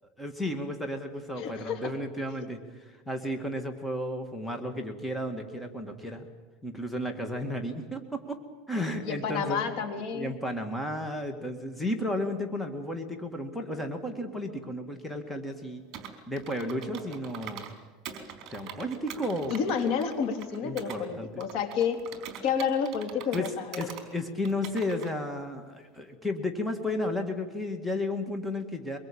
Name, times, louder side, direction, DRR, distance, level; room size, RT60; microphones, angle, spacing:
voice 1, 0.2-2.6 2.9-6.3 6.6-8.4 8.7-15.8 16.3-17.7 18.5-19.6 20.6-21.4 23.3-23.5 23.8-29.0, left 1 dB, 5° left, 5 dB, 2.1 m, -33 dB
voice 2, 1.4-1.9 9.0-10.3 19.5-22.0 22.4-23.9, left 6 dB, 55° left, 6 dB, 3.3 m, -30 dB
Computer keyboard, 15.9-17.7 18.1-21.0 21.4-24.1 24.5-25.1, right 8 dB, 45° right, 4.5 m, -43 dB
24.0 x 22.5 x 8.8 m, 1.3 s
supercardioid pair, 135°, 0 cm